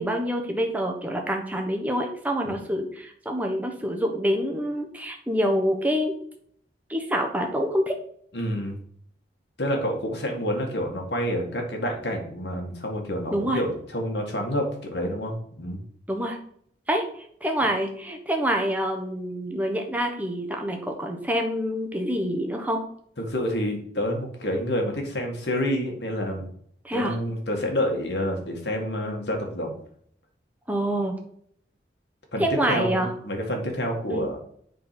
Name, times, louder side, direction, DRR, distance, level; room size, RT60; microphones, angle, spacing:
voice 1, 0.0-6.1 6.9-8.0 13.3-13.6 16.1-16.4 16.9-17.0 17.4-22.8 26.8-27.2 30.7-31.2 32.4-33.1 34.1-34.3, equal, 10° right, 2 dB, 1.1 m, -26 dB
voice 2, 8.3-8.8 9.6-15.8 23.2-26.5 26.9-29.8 32.3-34.4, equal, 70° left, 2 dB, 1.9 m, -28 dB
7.4 x 4.0 x 5.9 m, 0.64 s
head